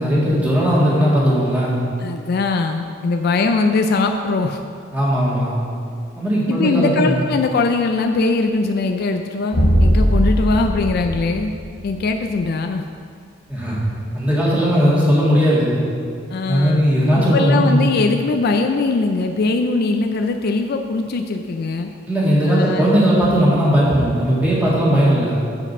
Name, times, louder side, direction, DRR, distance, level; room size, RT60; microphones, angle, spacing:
voice 1, 0.0-1.8 4.9-5.5 6.2-7.2 13.5-13.8 14.1-15.8 16.5-17.9 22.1-25.4, equal, 10° right, -8 dB, 1.9 m, -17 dB
voice 2, 2.0-4.6 6.5-11.5 11.8-12.8 16.3-16.8 17.3-21.9 22.5-22.8, left 3 dB, 55° left, 5 dB, 0.4 m, -21 dB
sound 1, 9.5-12.1, equal, 75° left, 1.1 m, -18 dB
7.8 x 4.9 x 5.4 m, 2.3 s
head